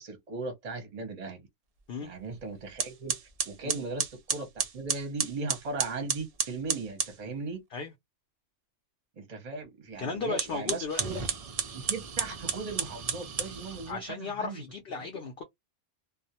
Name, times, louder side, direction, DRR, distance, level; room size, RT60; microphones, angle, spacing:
voice 1, 0.0-1.4 2.0-3.2 3.4-7.6 9.2-11.2 11.7-14.6 15.0-15.1, right 3 dB, 40° right, 0.7 m, -38 dB
sound 1, 2.3-2.4 2.8-7.2 10.3-13.9, right 6 dB, 70° right, 0.3 m, -33 dB
voice 2, 10.0-11.0 13.9-15.4, left 4 dB, 60° left, 0.7 m, -35 dB
2.3 x 2.0 x 2.8 m
omnidirectional pair, 1.3 m